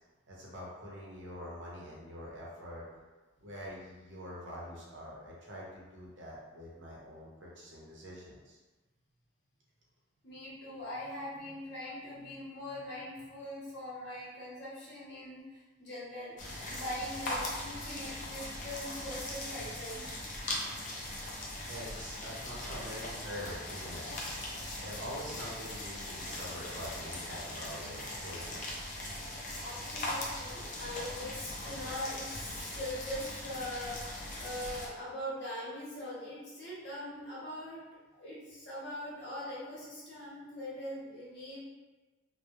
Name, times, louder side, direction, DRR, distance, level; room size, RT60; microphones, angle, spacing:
voice 1, 0.3-2.8 3.4-8.6 21.7-24.1 24.8-28.8, equal, 60° right, -5 dB, 0.7 m, -45 dB
voice 2, 10.2-20.0 29.6-34.0 34.4-37.8 38.1-41.6, left 1 dB, 55° left, -7 dB, 0.8 m, -42 dB
sound 1, 16.4-34.9, left 1 dB, 40° left, 0.4 m, -40 dB
2.2 x 2.0 x 2.9 m, 1.2 s
head